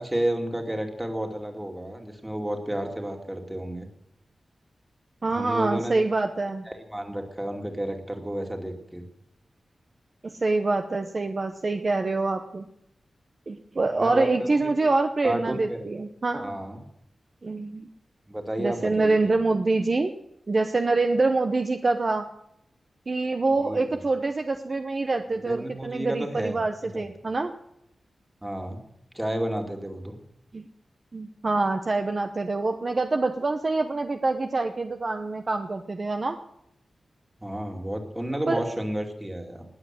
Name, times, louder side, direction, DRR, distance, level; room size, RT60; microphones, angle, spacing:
voice 1, 0.0-3.9 5.3-5.9 6.7-9.0 14.0-14.3 14.6-14.9 15.2-15.8 16.4-16.8 18.3-19.3 23.6-24.0 25.4-26.6 26.9-27.0 28.4-28.8 29.1-30.2 37.4-39.6, right 1 dB, 10° right, 3 dB, 2.4 m, -31 dB
voice 2, 5.2-6.7 10.2-12.6 13.5-16.6 17.4-17.9 18.6-20.1 20.5-22.3 23.1-27.5 30.5-30.6 31.1-36.4 38.5-38.6, right 3 dB, 35° right, 6 dB, 0.9 m, -25 dB
19.5 x 7.8 x 7.5 m, 0.78 s
wide cardioid pair, 145°, 0 cm